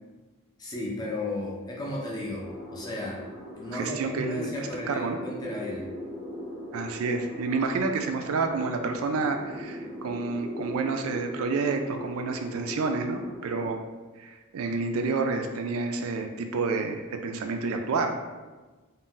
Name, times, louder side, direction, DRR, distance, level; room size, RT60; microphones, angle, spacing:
voice 1, 0.6-3.2 3.6-5.9, left 1 dB, 20° left, -3 dB, 0.5 m, -34 dB
sound 1, 2.4-13.7, equal, 20° right, 0.6 m, -39 dB
voice 2, 3.7-5.2 6.7-13.8 14.2-18.2, right 4 dB, 80° right, 5 dB, 0.3 m, -29 dB
2.6 x 2.1 x 3.7 m, 1.3 s
head